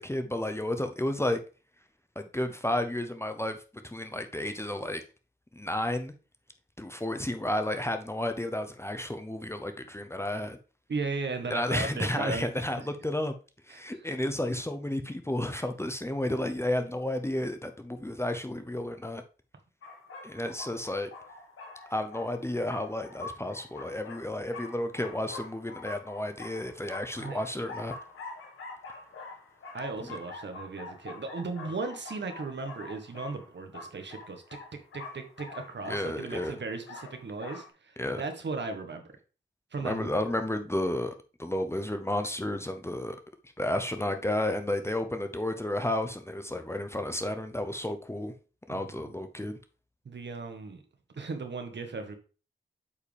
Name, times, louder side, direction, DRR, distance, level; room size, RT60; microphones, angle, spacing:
voice 1, 0.0-1.4 2.2-5.0 5.5-6.1 6.8-10.6 11.5-13.3 13.7-19.2 20.2-21.1 21.9-28.0 35.9-36.6 38.0-38.2 39.8-43.2 43.6-48.3 48.7-49.6, left 1 dB, 10° left, 0.8 m, -32 dB
voice 2, 10.9-12.5 12.8-12.9 13.7-14.0 27.2-27.4 29.7-34.6 34.9-39.0 39.7-40.1 48.7-49.1 50.0-50.8 51.1-52.2, right 3 dB, 60° right, 1.5 m, -36 dB
sound 1, 19.8-37.7, left 3 dB, 80° left, 1.7 m, -45 dB
8.4 x 4.9 x 3.5 m
cardioid pair, 60°, 21 cm